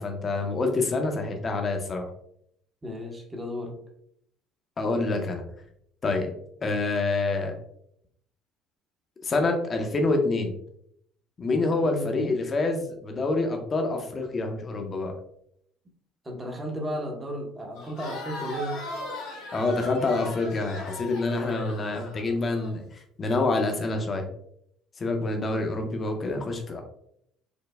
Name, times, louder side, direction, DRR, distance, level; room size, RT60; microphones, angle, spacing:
voice 1, 0.0-2.1 4.8-5.4 6.0-6.3 6.6-7.5 9.2-10.5 11.4-15.1 19.5-22.9 23.2-24.3 25.0-26.8, left 3 dB, 40° left, 4 dB, 0.7 m, -27 dB
voice 2, 2.8-3.7 11.6-12.4 16.2-18.8, equal, 20° right, 1 dB, 0.9 m, -34 dB
Crowd, 17.8-22.7, left 1 dB, 80° left, 0.9 m, -38 dB
5.2 x 2.0 x 2.3 m, 0.71 s
hypercardioid pair, 60°, 0 cm